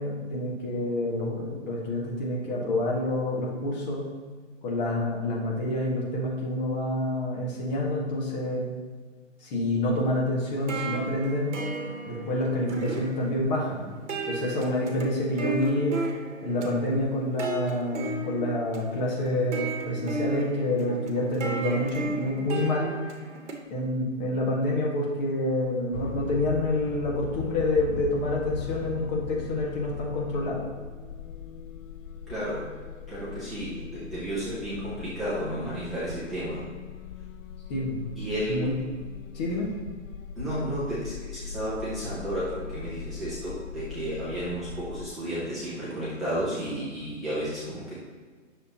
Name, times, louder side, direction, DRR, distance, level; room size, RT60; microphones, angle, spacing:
voice 1, 0.0-4.0 4.6-8.7 9.4-11.6 12.1-13.9 14.3-16.0 16.4-22.9 23.7-30.6 37.7-38.0 38.5-38.7 39.3-39.7, left 1 dB, 35° left, -3 dB, 1.8 m, -28 dB
sound 1, 10.4-23.6, right 3 dB, 65° right, 1.3 m, -35 dB
sound 2, 25.9-45.1, left 7 dB, 90° left, 0.6 m, -39 dB
voice 2, 32.3-32.7 33.1-36.6 38.2-38.6 39.7-39.8 40.3-47.9, right 1 dB, ahead, -13 dB, 0.5 m, -32 dB
9.7 x 6.4 x 3.0 m, 1.5 s
hypercardioid pair, 150°, 38 cm